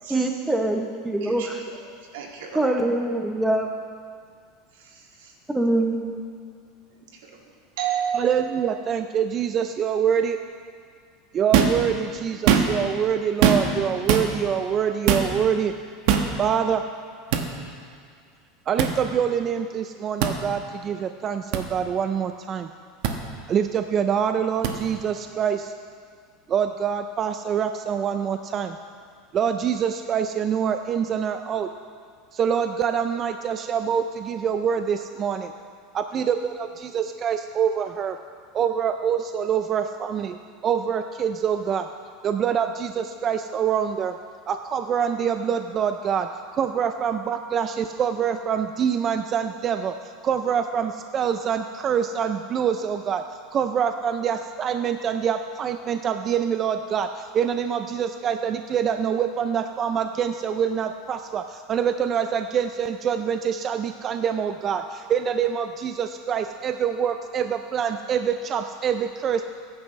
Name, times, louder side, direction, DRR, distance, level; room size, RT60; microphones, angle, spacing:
voice 1, 0.1-1.6 2.5-3.7 5.5-6.2, right 2 dB, 5° right, 2 dB, 0.9 m, -24 dB
voice 2, 1.2-1.5 2.1-2.7 4.8-5.3 7.2-7.4 7.8-8.2, right 8 dB, 90° right, 0 dB, 2.2 m, -31 dB
voice 3, 8.1-10.4 11.3-15.7 16.4-16.8 18.7-22.7 23.5-25.7 26.5-28.8 29.3-31.7 32.3-35.5 35.9-38.2 38.5-40.4 40.6-41.9 42.2-44.2 44.5-46.3 46.5-49.9 50.2-53.2 53.5-69.4, right 8 dB, 30° right, 8 dB, 0.4 m, -25 dB
sound 1, 11.5-11.8 12.3-12.9 13.4-13.8 14.1-14.3 15.1-15.3 16.1-16.3 17.3-17.5 18.8-18.9 20.2-20.4 21.5-21.6 23.0-23.1 24.6-24.7, right 8 dB, 60° right, 1.1 m, -20 dB
21.0 x 9.7 x 3.2 m, 2.1 s
supercardioid pair, 155°, 0 cm